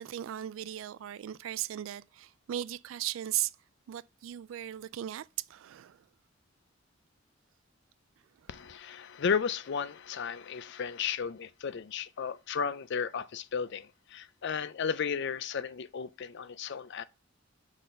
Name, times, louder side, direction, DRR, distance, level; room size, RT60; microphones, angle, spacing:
voice 1, 0.0-3.6 3.9-6.1, right 12 dB, 70° right, 0.3 m, -37 dB
voice 2, 8.5-17.0, left 6 dB, 60° left, 0.5 m, -34 dB
6.4 x 3.9 x 5.4 m
head